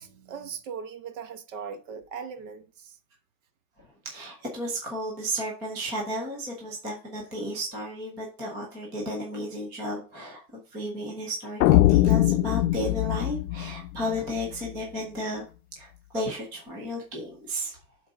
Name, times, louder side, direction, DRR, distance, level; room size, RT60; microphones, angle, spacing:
voice 1, 0.0-3.0, right 6 dB, 50° right, 1.2 m, -39 dB
voice 2, 3.8-15.4 15.8-17.8, equal, 10° right, 0.4 m, -33 dB
sound 1, 11.6-14.7, left 15 dB, 65° left, 0.6 m, -22 dB
7.0 x 3.9 x 4.7 m
supercardioid pair, 165°, 49 cm